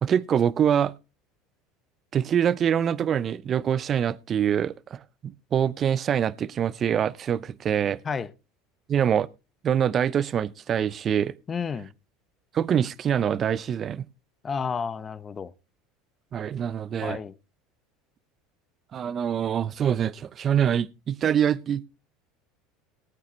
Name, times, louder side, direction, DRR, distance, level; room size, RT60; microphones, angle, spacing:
voice 1, 0.0-0.9 2.1-5.0 5.5-8.0 8.9-9.3 9.6-11.4 12.5-14.0 16.3-17.2 18.9-21.8, right 8 dB, 40° right, 0.6 m, -24 dB
voice 2, 11.5-11.9 14.4-15.5 17.0-17.3, left 6 dB, 30° left, 0.8 m, -31 dB
19.5 x 8.5 x 3.1 m
supercardioid pair, 100°, 0 cm